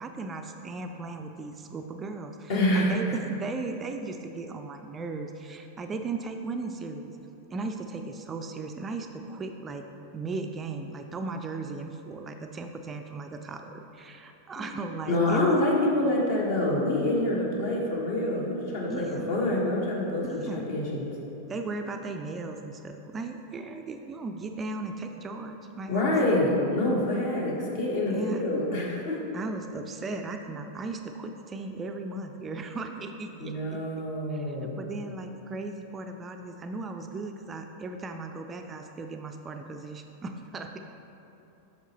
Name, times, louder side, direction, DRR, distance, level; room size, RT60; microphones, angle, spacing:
voice 1, 0.0-7.1 7.5-9.8 10.1-15.6 18.9-19.3 20.2-20.6 21.5-26.2 28.1-28.4 29.3-33.8 34.3-40.8, right 3 dB, 20° right, 5 dB, 0.3 m, -37 dB
voice 2, 2.5-3.2 15.1-21.1 25.9-29.2 33.4-34.8, left 1 dB, 50° left, -3 dB, 1.3 m, -26 dB
8.1 x 5.9 x 2.9 m, 3.0 s
figure-of-eight pair, 90°, 0 cm